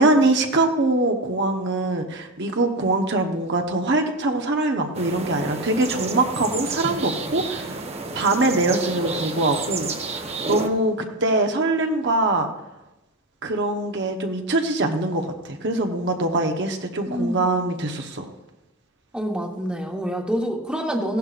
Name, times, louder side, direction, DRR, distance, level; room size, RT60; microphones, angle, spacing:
voice 1, 0.0-7.8 8.1-9.9 10.2-12.5 13.4-18.3, right 2 dB, 60° right, 4 dB, 1.0 m, -23 dB
sound 1, 4.9-10.7, right 3 dB, 30° right, 1.0 m, -30 dB
voice 2, 17.1-17.4 19.1-21.2, equal, 5° right, 1 dB, 1.2 m, -26 dB
16.0 x 11.5 x 2.5 m, 0.99 s
head